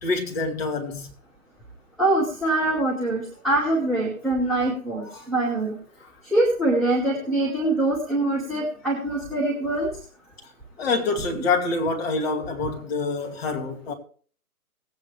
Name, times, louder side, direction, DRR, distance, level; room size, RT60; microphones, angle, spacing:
voice 1, 0.0-1.1 5.1-5.3 10.8-13.9, left 3 dB, 40° left, 2.3 m, -26 dB
voice 2, 2.0-5.7 6.2-9.9, right 2 dB, ahead, 0.8 m, -24 dB
18.5 x 8.7 x 3.2 m
figure-of-eight pair, 135°, 46 cm